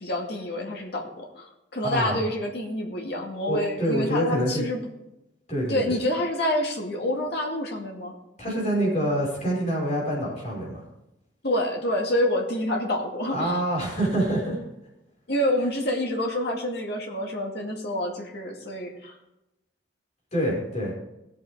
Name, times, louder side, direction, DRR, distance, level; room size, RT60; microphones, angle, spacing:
voice 1, 0.0-1.4 1.7-4.8 5.7-8.1 11.4-13.6 15.3-19.1, left 1 dB, 60° left, 0 dB, 2.1 m, -27 dB
voice 2, 1.8-2.2 3.5-4.6 5.5-6.0 8.4-10.8 13.3-14.6 20.3-20.9, right 1 dB, 40° left, -4 dB, 5.5 m, -26 dB
18.0 x 8.6 x 3.6 m, 0.91 s
head